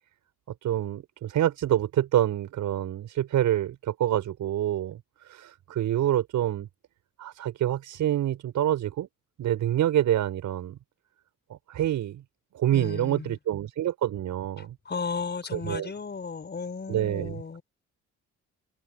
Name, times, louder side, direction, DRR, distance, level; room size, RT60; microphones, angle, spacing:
voice 1, 0.6-5.0 5.3-6.7 7.2-9.1 9.4-10.8 11.5-12.2 12.5-14.8 15.5-15.9 16.9-17.4, right 12 dB, 75° right, 5.9 m, -27 dB
voice 2, 12.7-13.4 14.6-17.6, left 5 dB, 35° left, 5.3 m, -35 dB
cardioid pair, 90°, 30 cm